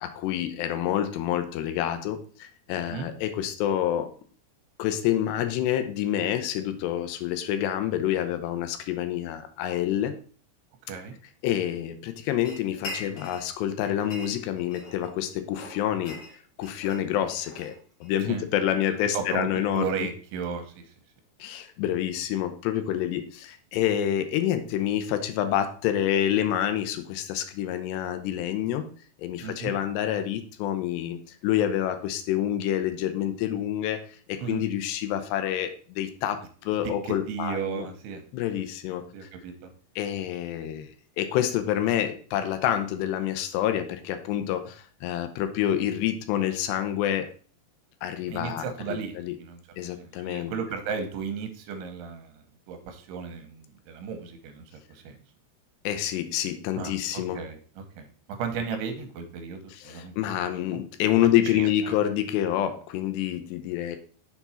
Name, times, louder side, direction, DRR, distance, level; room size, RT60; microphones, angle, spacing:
voice 1, 0.0-4.1 4.8-10.1 11.4-16.2 16.6-17.7 18.0-20.1 21.4-28.9 29.2-37.9 38.3-39.3 40.0-40.9 41.2-47.3 48.0-49.4 49.8-50.5 55.8-57.4 59.7-64.0, left 11 dB, 90° left, 9 dB, 2.8 m, -28 dB
voice 2, 2.8-3.1 10.9-11.2 18.3-18.4 18.9-20.8 29.4-29.7 34.4-34.6 37.0-38.2 38.9-39.7 48.3-55.2 56.8-60.1 60.4-60.8 61.5-62.0, right 6 dB, 80° right, 6 dB, 3.0 m, -35 dB
sound 1, 12.4-13.5 13.8-15.1 15.5-18.2, left 2 dB, 50° left, 1.8 m, -42 dB
6.9 x 4.6 x 4.3 m, 0.41 s
omnidirectional pair, 4.8 m